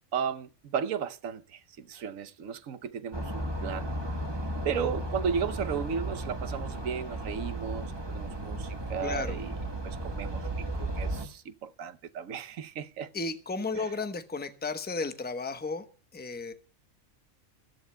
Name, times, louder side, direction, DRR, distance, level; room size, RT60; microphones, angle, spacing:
voice 1, 0.1-4.0 4.6-9.6 9.8-13.1 13.8-13.9, right 7 dB, 85° right, 1.2 m, -35 dB
sound 1, 3.1-11.3, right 1 dB, 20° right, 1.2 m, -34 dB
voice 2, 9.0-9.4 13.1-15.8 16.1-16.5, left 3 dB, 10° left, 0.8 m, -33 dB
22.5 x 14.5 x 2.2 m
omnidirectional pair, 1.4 m